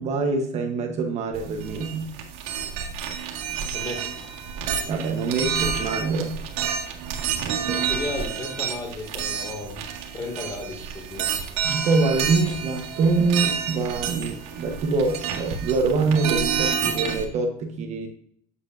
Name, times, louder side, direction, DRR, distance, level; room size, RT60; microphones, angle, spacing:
voice 1, 0.0-2.1 4.9-6.4 11.6-18.1, right 4 dB, 40° right, 3 dB, 1.0 m, -24 dB
sound 1, 1.3-17.2, right 7 dB, 70° right, 1.8 m, -29 dB
voice 2, 3.7-4.1 7.6-9.9 10.1-11.3, left 2 dB, 20° left, 2 dB, 2.0 m, -34 dB
8.2 x 8.0 x 2.5 m, 0.63 s
cardioid pair, 165°, 18 cm